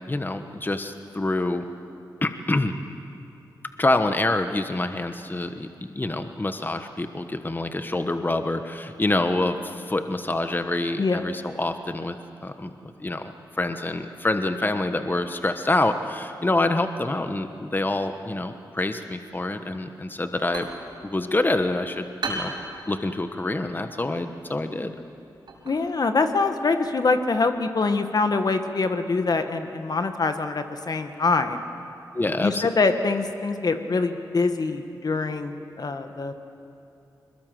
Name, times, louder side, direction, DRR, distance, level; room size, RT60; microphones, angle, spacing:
voice 1, 0.0-1.6 2.2-2.8 3.8-5.7 5.9-12.1 12.4-13.2 13.6-20.7 21.0-22.5 22.9-24.9 32.1-32.7, left 2 dB, 25° left, 8 dB, 1.3 m, -26 dB
sound 1, 20.2-27.6, right 3 dB, 70° right, 5.1 m, -39 dB
voice 2, 25.6-31.6 32.4-36.3, left 3 dB, 55° left, 7 dB, 1.5 m, -24 dB
22.0 x 21.0 x 7.8 m, 2.6 s
supercardioid pair, 45°, 8 cm